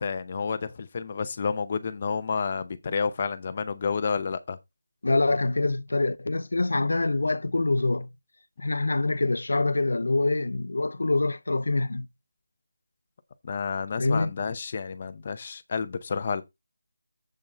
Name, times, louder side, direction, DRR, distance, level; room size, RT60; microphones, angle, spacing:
voice 1, 0.0-4.6 13.4-16.4, left 5 dB, 20° left, 0.6 m, -30 dB
voice 2, 5.0-8.1 8.6-12.1 14.0-14.3, left 2 dB, 65° left, 0.7 m, -25 dB
7.7 x 7.2 x 3.7 m
figure-of-eight pair, 180°, 0 cm